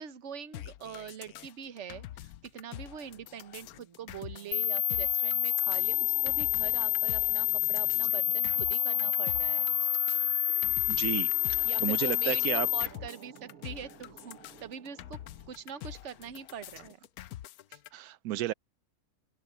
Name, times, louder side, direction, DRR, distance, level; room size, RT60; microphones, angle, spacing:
voice 1, 0.0-9.6 11.6-17.0, right 8 dB, 55° right, 1.3 m, -44 dB
sound 1, 0.5-17.9, left 13 dB, 90° left, 1.1 m, -46 dB
sound 2, 3.2-15.8, right 7 dB, 70° right, 1.5 m, -53 dB
sound 3, 4.5-12.9, left 12 dB, 65° left, 0.8 m, -28 dB
voice 2, 10.9-12.7 17.9-18.5, right 13 dB, 85° right, 1.1 m, -33 dB
open air
omnidirectional pair, 1.5 m